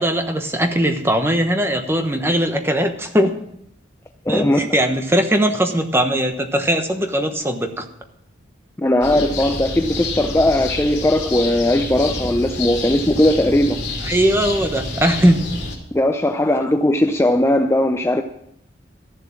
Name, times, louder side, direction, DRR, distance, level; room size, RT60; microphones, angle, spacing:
voice 1, 0.0-3.3 4.3-7.9 14.0-15.5, equal, 15° right, 6 dB, 1.1 m, -19 dB
voice 2, 4.3-4.6 8.8-13.8 15.9-18.2, left 1 dB, 15° left, 6 dB, 0.5 m, -18 dB
sound 1, 9.0-15.8, left 2 dB, 65° left, 3.1 m, -28 dB
13.5 x 7.5 x 7.3 m, 0.75 s
head